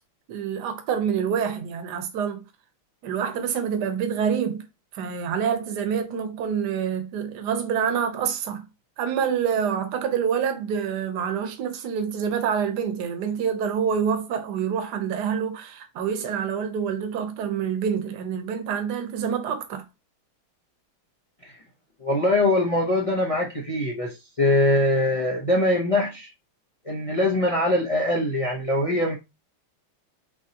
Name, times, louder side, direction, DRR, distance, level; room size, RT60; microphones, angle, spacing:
voice 1, 0.3-2.4 3.0-4.6 4.9-8.6 9.0-19.8, right 7 dB, 60° right, 1.3 m, -27 dB
voice 2, 22.0-26.3 26.8-29.2, left 1 dB, 50° left, 0.4 m, -22 dB
6.0 x 3.0 x 2.9 m
omnidirectional pair, 2.3 m